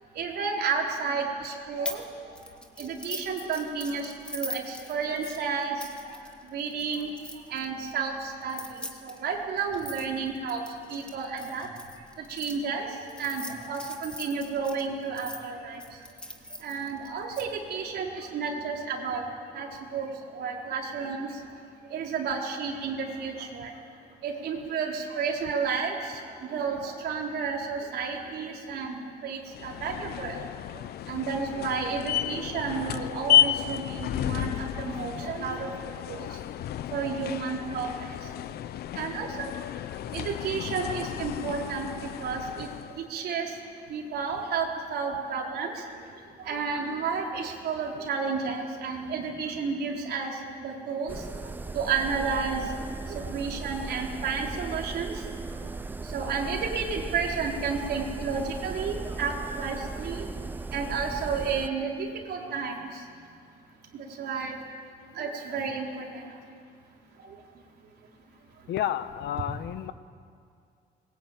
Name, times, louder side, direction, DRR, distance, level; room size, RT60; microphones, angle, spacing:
voice 1, 0.1-2.0 2.8-5.8 6.5-7.1 7.5-10.6 10.9-11.7 12.3-12.9 13.2-15.8 16.6-19.2 19.5-19.7 19.9-20.1 20.3-21.3 21.9-23.7 24.2-30.4 31.1-36.3 36.9-38.1 39.0-39.5 40.1-41.9 42.2-42.7 43.1-43.5 43.9-45.7 46.4-50.3 50.6-51.2 51.7-52.6 53.1-55.1 56.1-60.2 60.7-62.7 63.9-64.6 65.2-66.2, right 5 dB, 70° right, -1 dB, 4.5 m, -31 dB
sound 1, 1.8-2.0 2.3-7.6 8.4-12.5 13.1-15.4 15.8-17.4, left 1 dB, 5° left, 2.1 m, -41 dB
sound 2, 29.5-43.0, left 11 dB, 65° left, 0.6 m, -31 dB
sound 3, 51.1-61.7, right 3 dB, 10° right, 0.5 m, -37 dB
voice 2, 68.7-69.9, left 11 dB, 90° left, 13 dB, 1.1 m, -31 dB
26.0 x 22.0 x 9.2 m, 2.3 s
cardioid pair, 175°, 18 cm